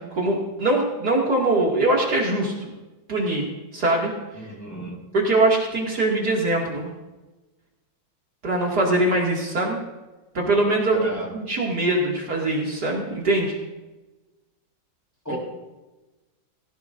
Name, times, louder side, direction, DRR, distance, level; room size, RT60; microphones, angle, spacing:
voice 1, 0.0-2.5 3.1-3.5 3.7-4.1 5.1-6.9 8.4-9.8 10.3-13.6 15.3-15.4, right 2 dB, 55° right, -3 dB, 2.8 m, -22 dB
voice 2, 4.3-5.0 10.9-11.3 15.2-15.4, right 1 dB, 10° left, -3 dB, 4.9 m, -34 dB
20.0 x 17.0 x 2.6 m, 1.1 s
omnidirectional pair, 2.1 m